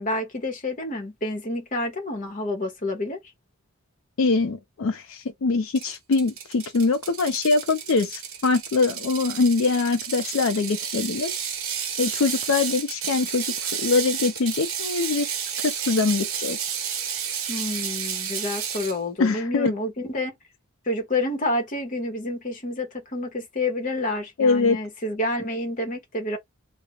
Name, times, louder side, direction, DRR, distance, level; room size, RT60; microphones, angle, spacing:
voice 1, 0.0-3.2 17.5-20.3 20.9-26.4, left 1 dB, 35° left, 0.8 m, -29 dB
voice 2, 4.2-11.4 12.0-15.3 15.6-16.6 19.2-19.7 24.4-24.8, left 4 dB, 65° left, 0.4 m, -23 dB
Ratchet pawl, 5.8-19.0, right 8 dB, 70° right, 0.7 m, -31 dB
2.4 x 2.0 x 2.9 m
head